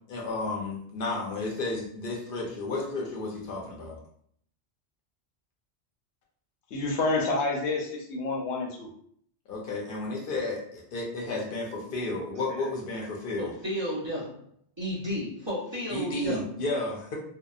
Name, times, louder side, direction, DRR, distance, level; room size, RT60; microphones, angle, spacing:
voice 1, 0.1-4.0 9.5-13.5 15.9-17.2, left 2 dB, 60° left, -1 dB, 0.7 m, -32 dB
voice 2, 6.7-8.9, left 3 dB, 85° left, 1 dB, 0.9 m, -28 dB
voice 3, 13.4-14.4 14.8-16.4 16.7-16.9, equal, 30° right, -8 dB, 0.6 m, -33 dB
2.7 x 2.1 x 2.3 m, 0.64 s
omnidirectional pair, 1.1 m